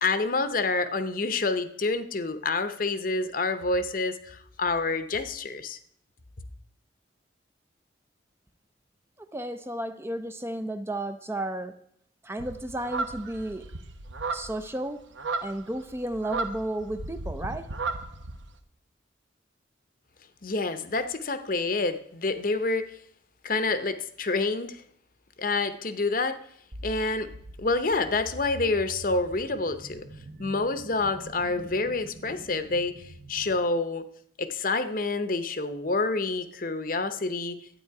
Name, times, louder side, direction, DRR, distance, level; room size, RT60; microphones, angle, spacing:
voice 1, 0.0-5.8 20.4-22.9 23.4-24.8 25.4-26.4 26.8-27.3 27.6-30.0 30.4-33.0 33.3-34.0 34.4-37.6, left 3 dB, 45° left, 10 dB, 0.8 m, -28 dB
voice 2, 9.3-11.7 12.2-13.6 14.3-15.0 15.4-17.7, right 1 dB, 15° right, 9 dB, 0.5 m, -33 dB
sound 1, 12.4-18.5, right 3 dB, 80° right, 1.0 m, -34 dB
sound 2, 26.7-33.6, right 1 dB, 55° right, 1.0 m, -45 dB
12.0 x 9.2 x 4.8 m, 0.67 s
head